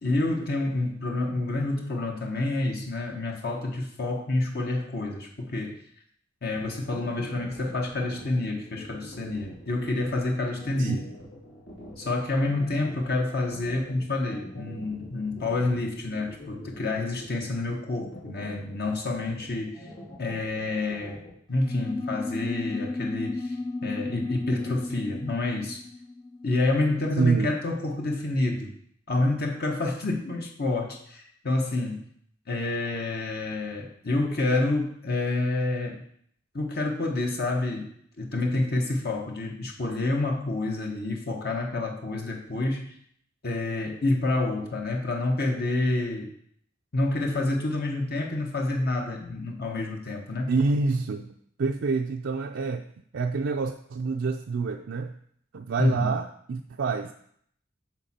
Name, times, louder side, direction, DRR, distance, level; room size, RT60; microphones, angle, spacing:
voice 1, 0.0-5.8 6.4-11.0 12.0-19.9 20.2-21.2 21.5-25.8 26.4-28.7 29.1-32.0 32.5-36.0 36.5-37.9 38.2-42.9 43.4-46.3 46.9-50.5 55.8-56.1, left 2 dB, 55° left, 1 dB, 1.1 m, -28 dB
sound 1, 6.6-21.3, left 1 dB, 85° left, 3.1 m, -45 dB
sound 2, 21.5-27.5, left 2 dB, 25° left, 0.4 m, -34 dB
voice 2, 27.2-27.5 50.5-52.9 53.1-55.1 55.5-57.1, right 4 dB, 70° right, 4 dB, 0.4 m, -27 dB
9.0 x 5.8 x 4.2 m, 0.66 s
head